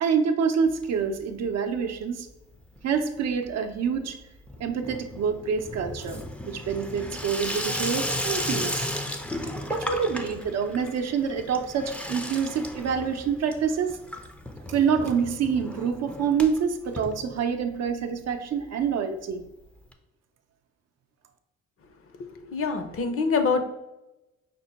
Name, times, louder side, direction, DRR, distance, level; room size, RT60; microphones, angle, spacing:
voice 1, 0.0-2.3 2.8-4.2 4.6-8.9 9.3-14.0 14.7-19.4, right 6 dB, 60° right, 6 dB, 0.6 m, -27 dB
Water tap faucet / Sink (filling or washing), 0.7-1.5 1.7-2.3 2.6-17.9 18.2-18.3 18.5-18.6 18.8-18.9 19.9-20.0, left 1 dB, 5° left, 0.4 m, -35 dB
voice 2, 22.2-23.6, left 4 dB, 45° left, 8 dB, 0.6 m, -25 dB
5.2 x 2.1 x 4.0 m, 0.97 s
cardioid pair, 90°, 30 cm